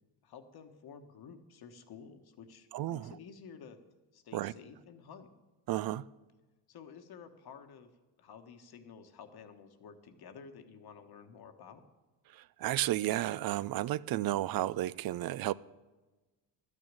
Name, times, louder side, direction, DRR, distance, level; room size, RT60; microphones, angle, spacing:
voice 1, 0.2-3.8 4.1-5.3 6.7-7.9 8.2-11.8, left 6 dB, 55° left, 1.4 m, -52 dB
voice 2, 2.7-3.1 4.3-4.5 5.7-6.1 12.3-15.5, right 14 dB, 55° right, 0.5 m, -32 dB
12.5 x 6.6 x 8.8 m
cardioid pair, 95°, 43 cm